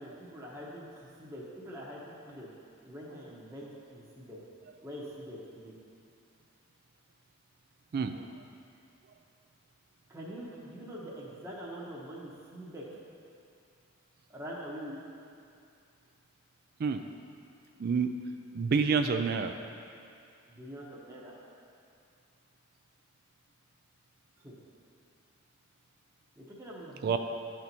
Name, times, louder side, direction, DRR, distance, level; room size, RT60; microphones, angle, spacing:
voice 1, 0.0-2.5 2.8-4.4 4.8-5.7 10.1-12.8 14.3-15.0 20.5-21.3 24.4-24.5 26.4-27.2, equal, 15° right, -6 dB, 0.9 m, -44 dB
voice 2, 17.8-18.1 18.5-19.5 27.0-27.2, right 5 dB, 45° right, 7 dB, 0.3 m, -27 dB
11.0 x 4.4 x 4.1 m, 2.4 s
head